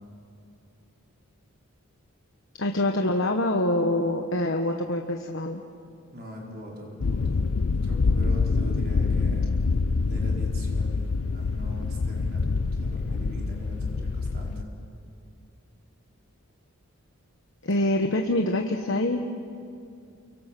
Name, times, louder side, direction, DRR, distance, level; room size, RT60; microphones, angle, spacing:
voice 1, 2.6-5.6 17.6-19.2, left 1 dB, 60° left, 3 dB, 1.2 m, -25 dB
voice 2, 6.1-9.5 10.0-14.7, equal, 45° right, -2 dB, 4.8 m, -41 dB
sound 1, 7.0-14.6, left 4 dB, 85° left, 0.6 m, -26 dB
29.0 x 23.5 x 6.1 m, 2.5 s
head